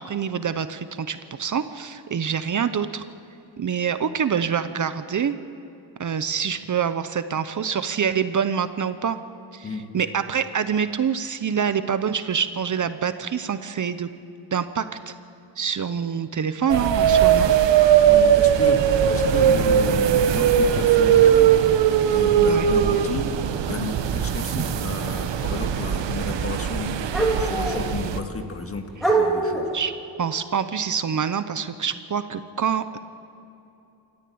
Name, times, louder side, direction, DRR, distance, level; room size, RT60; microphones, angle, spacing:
voice 1, 0.0-3.0 3.6-5.4 6.0-9.2 9.5-14.1 14.5-15.1 15.6-17.5 22.5-22.7 29.7-29.9 30.2-33.0, right 7 dB, 45° right, 11 dB, 0.9 m, -26 dB
sound 1, 16.7-28.2, right 9 dB, 85° right, 1.3 m, -19 dB
voice 2, 18.0-21.5 22.1-23.3 23.7-29.7, left 3 dB, 30° left, 5 dB, 1.9 m, -33 dB
sound 2, 22.8-22.9 25.4-25.5 27.1-27.9 28.6-28.7 29.0-29.8, right 3 dB, ahead, 3.7 m, -23 dB
28.0 x 14.0 x 8.6 m, 2.8 s
wide cardioid pair, 145°, 42 cm